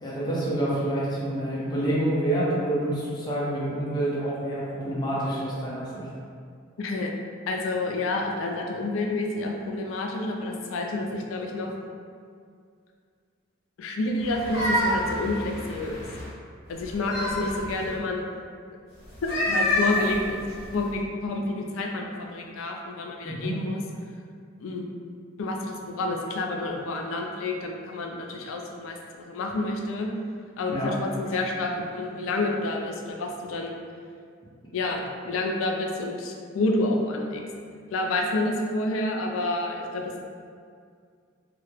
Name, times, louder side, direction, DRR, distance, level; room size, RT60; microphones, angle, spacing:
voice 1, 0.0-6.0 23.2-23.6 30.7-30.9, right 1 dB, 20° left, -6 dB, 0.5 m, -27 dB
voice 2, 6.8-7.1 7.5-11.7 13.8-16.0 16.7-18.2 19.5-20.5 20.7-23.8 24.6-24.9 25.4-30.1 30.6-33.7 34.7-37.4 37.9-40.2, left 2 dB, 90° left, 2 dB, 0.3 m, -29 dB
sound 1, 14.2-16.3 16.8-18.0 19.1-20.9, left 1 dB, 70° left, 0.9 m, -28 dB
2.3 x 2.0 x 2.9 m, 2.2 s
head